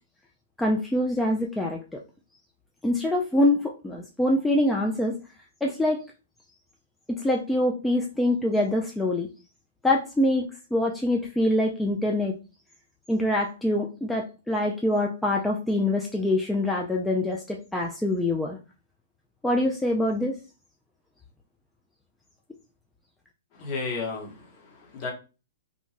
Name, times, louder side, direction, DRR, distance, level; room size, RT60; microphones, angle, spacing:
voice 1, 0.6-2.0 2.8-5.2 5.6-6.0 7.1-9.3 9.8-12.3 13.1-18.6 19.4-20.4, left 1 dB, 5° left, -1 dB, 0.4 m, -25 dB
voice 2, 23.5-25.1, left 4 dB, 35° left, 0 dB, 1.1 m, -33 dB
2.6 x 2.2 x 3.1 m, 0.32 s
hypercardioid pair, 130°, 0 cm